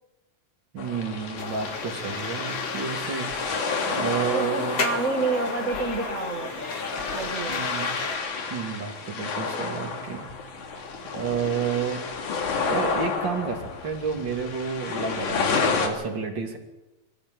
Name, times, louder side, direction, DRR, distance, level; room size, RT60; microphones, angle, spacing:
voice 1, 0.7-3.3 3.9-4.8 7.5-7.9 8.5-10.3 11.1-12.1 12.7-16.6, right 6 dB, 35° right, 2 dB, 2.8 m, -30 dB
sound 1, 0.8-15.9, left 4 dB, 65° left, 3.6 m, -30 dB
sound 2, 1.4-8.2, left 3 dB, 40° left, 1.4 m, -35 dB
voice 2, 4.3-6.7 7.1-7.7, right 4 dB, 80° right, 5 dB, 0.6 m, -29 dB
23.5 x 14.5 x 7.7 m, 1.0 s
omnidirectional pair, 3.9 m